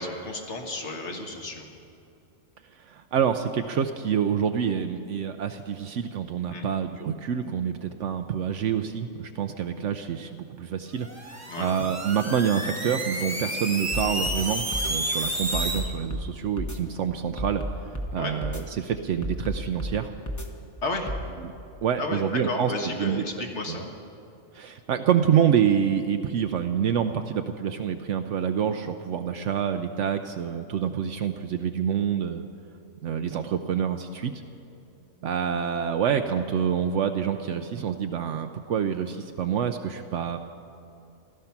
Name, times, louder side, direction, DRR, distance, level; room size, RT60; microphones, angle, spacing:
voice 1, 0.0-1.7 6.5-6.6 11.5-11.7 18.1-18.3 20.8-21.2 22.0-24.0, left 2 dB, 60° left, 2 dB, 1.8 m, -32 dB
voice 2, 2.9-17.6 18.1-20.1 21.8-22.7 23.0-23.8 24.5-32.5 33.0-34.3 35.2-40.4, right 8 dB, 70° right, 7 dB, 0.9 m, -27 dB
sound 1, 11.0-15.8, right 1 dB, 10° right, 1.3 m, -31 dB
sound 2, 13.9-14.4 14.7-14.9 15.5-16.3 16.6-16.8 17.4-18.1 18.4-18.6 19.2-20.0 20.3-20.5 21.1-21.2, equal, 15° left, 1.0 m, -31 dB
16.0 x 13.0 x 5.9 m, 2.7 s
omnidirectional pair, 1.4 m